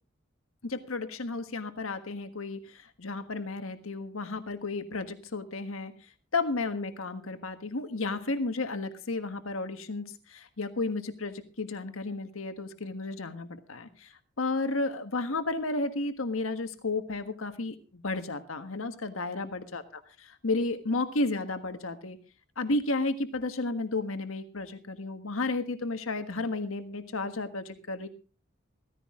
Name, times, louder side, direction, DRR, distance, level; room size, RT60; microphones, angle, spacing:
voice 1, 0.6-19.8 20.2-22.2 22.6-28.1, left 3 dB, 75° left, 8 dB, 1.5 m, -33 dB
16.0 x 15.0 x 3.7 m, 0.35 s
head